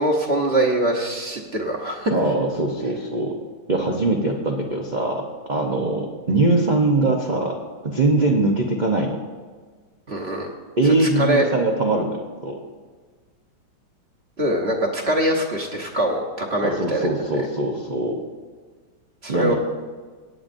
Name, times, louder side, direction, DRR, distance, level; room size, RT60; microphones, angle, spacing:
voice 1, 0.0-2.1 10.1-10.5 10.8-11.4 14.4-17.1 17.3-17.5 19.2-19.5, right 1 dB, 40° right, 1 dB, 1.0 m, -23 dB
voice 2, 2.1-3.3 3.7-5.2 5.5-7.5 7.8-9.2 10.8-12.6 16.6-18.2 19.3-19.5, right 2 dB, 85° right, 0 dB, 0.4 m, -22 dB
18.0 x 8.9 x 2.6 m, 1.5 s
omnidirectional pair, 2.2 m